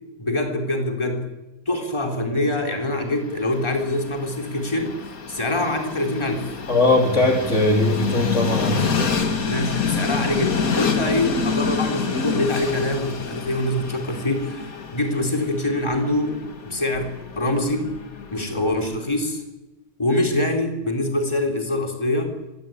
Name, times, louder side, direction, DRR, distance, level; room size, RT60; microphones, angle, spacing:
voice 1, 0.2-1.2 1.7-5.0 5.3-6.5 9.4-16.3 16.6-17.9 18.3-19.4 20.0-22.3, left 1 dB, 20° left, 3 dB, 4.0 m, -24 dB
Train, 3.0-19.1, left 5 dB, 85° left, 2.3 m, -28 dB
voice 2, 6.7-8.8, left 2 dB, 55° left, 2 dB, 3.9 m, -19 dB
25.0 x 18.0 x 9.2 m, 1.0 s
omnidirectional pair, 1.5 m